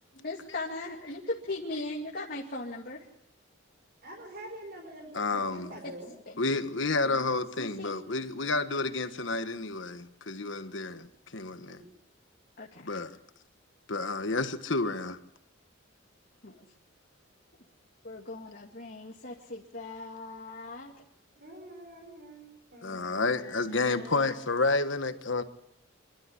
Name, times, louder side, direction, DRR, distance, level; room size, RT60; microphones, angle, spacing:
voice 1, 0.1-3.1 5.8-5.9 6.3-6.4 7.0-7.3 7.6-7.9 12.6-13.0 16.4-16.7 18.0-20.9, left 2 dB, 50° left, 2.5 m, -39 dB
voice 2, 4.0-6.1 11.7-11.9 21.4-24.4, right 1 dB, 55° right, 4.8 m, -46 dB
voice 3, 5.1-5.7 6.4-11.1 11.3-11.8 12.8-13.1 13.9-15.2 22.8-25.4, left 3 dB, 65° left, 1.4 m, -30 dB
26.0 x 13.0 x 9.8 m
head